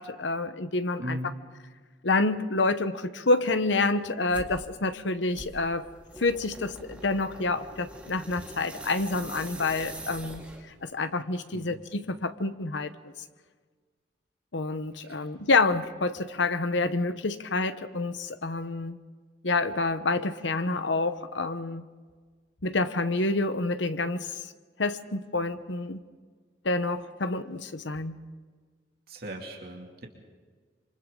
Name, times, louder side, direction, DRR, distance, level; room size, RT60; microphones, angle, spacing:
voice 1, 0.0-1.3 2.0-5.9 6.2-10.4 10.8-13.1 14.5-19.0 19.4-21.8 22.6-24.3 24.8-26.0 26.6-28.2, left 3 dB, 85° left, 11 dB, 1.0 m, -28 dB
voice 2, 1.0-1.3 11.5-11.7 15.1-15.2 29.1-30.1, equal, 55° right, 0 dB, 2.7 m, -37 dB
sound 1, 4.3-4.6 5.3-10.8, right 1 dB, 5° right, 2.4 m, -43 dB
27.0 x 25.5 x 3.9 m, 1.5 s
head